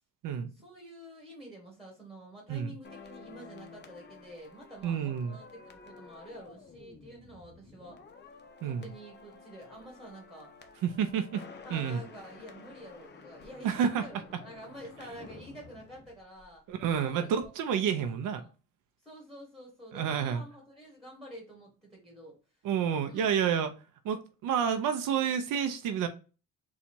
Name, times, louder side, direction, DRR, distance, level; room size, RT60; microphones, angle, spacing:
voice 1, 0.5-8.0 8.6-10.5 11.6-16.6 17.0-17.8 18.2-18.5 19.0-22.6 23.0-23.3, equal, ahead, 0 dB, 1.8 m, -49 dB
sound 1, 2.8-17.0 17.2-17.5, left 4 dB, 35° left, 0.7 m, -52 dB
voice 2, 4.8-5.4 8.6-8.8 10.8-11.4 11.7-12.0 13.6-14.1 16.7-18.4 19.9-20.4 22.6-23.7 24.0-26.1, right 8 dB, 80° right, 8 dB, 0.6 m, -29 dB
4.1 x 2.4 x 4.4 m, 0.33 s
cardioid pair, 105°, 32 cm